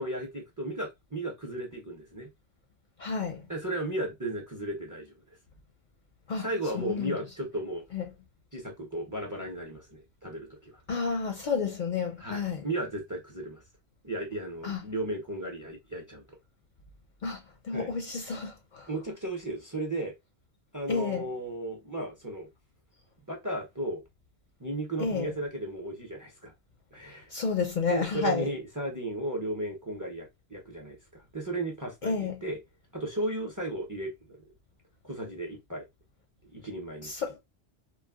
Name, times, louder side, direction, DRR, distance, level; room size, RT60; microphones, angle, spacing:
voice 1, 0.0-2.3 3.5-5.4 6.4-7.8 8.5-10.8 12.2-13.6 14.0-16.2 17.7-17.9 18.9-20.1 20.7-22.5 23.3-24.0 24.6-26.5 26.9-27.3 27.9-32.6 32.9-34.4 35.0-35.8 36.5-37.1, right 1 dB, 20° right, 0.6 m, -35 dB
voice 2, 3.0-3.4 6.3-6.5 6.8-7.1 7.9-8.0 10.9-12.6 14.6-14.8 17.2-18.9 20.9-21.2 25.0-25.3 27.3-28.5 32.0-32.4 37.0-37.4, left 5 dB, 55° left, 0.6 m, -31 dB
3.1 x 2.2 x 2.3 m
omnidirectional pair, 1.1 m